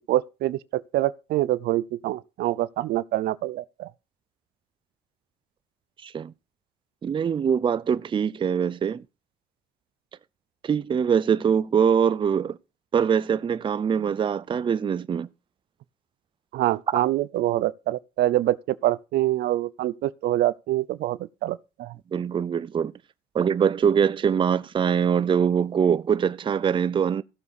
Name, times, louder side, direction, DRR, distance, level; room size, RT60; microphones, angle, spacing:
voice 1, 0.1-3.9 16.5-21.9, right 15 dB, 70° right, 0.6 m, -25 dB
voice 2, 6.0-6.3 7.0-9.0 10.6-12.6 12.9-15.3 22.1-22.9 23.3-27.2, right 7 dB, 30° right, 0.5 m, -23 dB
15.5 x 7.0 x 4.1 m
cardioid pair, 110°, 17 cm